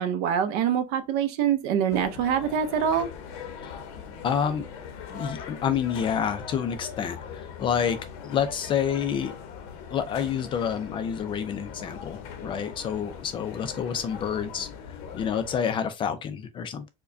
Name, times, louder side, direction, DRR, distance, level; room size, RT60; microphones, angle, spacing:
voice 1, 0.0-3.1, right 8 dB, 55° right, 0.6 m, -25 dB
sound 1, 1.9-15.6, left 6 dB, 75° left, 0.8 m, -40 dB
voice 2, 4.2-4.7 5.1-9.3 9.9-16.9, left 8 dB, 25° left, 0.4 m, -28 dB
4.7 x 2.2 x 2.5 m
cardioid pair, 150°, 19 cm